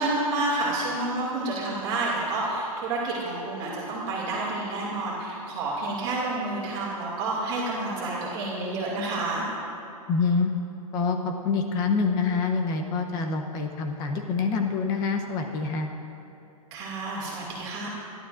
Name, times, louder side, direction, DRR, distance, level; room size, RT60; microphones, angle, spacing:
voice 1, 0.0-9.4 16.7-17.9, right 2 dB, 25° right, -5 dB, 2.4 m, -29 dB
voice 2, 10.1-10.5 10.9-15.9, left 4 dB, 20° left, 4 dB, 0.8 m, -26 dB
25.5 x 12.0 x 2.6 m, 2.9 s
hypercardioid pair, 165°, 19 cm